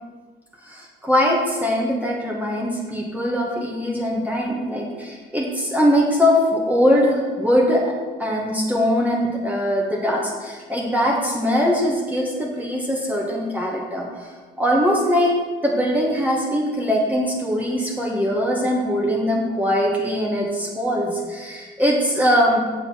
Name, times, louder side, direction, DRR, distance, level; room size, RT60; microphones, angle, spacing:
voice 1, 0.6-7.9 8.2-14.1 14.6-15.3 15.6-22.6, equal, 10° right, -3 dB, 1.7 m, -21 dB
7.7 x 7.0 x 4.5 m, 1.4 s
cardioid pair, 90°, 20 cm